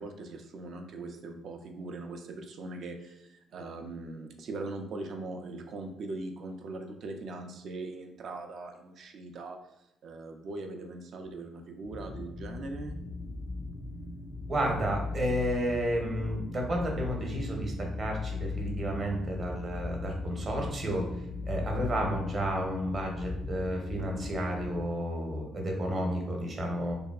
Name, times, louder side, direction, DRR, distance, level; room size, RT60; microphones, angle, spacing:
voice 1, 0.0-9.6 10.0-12.9, right 2 dB, 65° right, 4 dB, 0.4 m, -40 dB
sound 1, 11.8-24.8, left 3 dB, 45° left, 0.4 m, -38 dB
voice 2, 14.5-17.7 18.0-21.0 21.5-26.9, right 1 dB, 45° right, 0 dB, 0.8 m, -31 dB
2.7 x 2.2 x 2.3 m, 0.88 s
supercardioid pair, 65°, 0 cm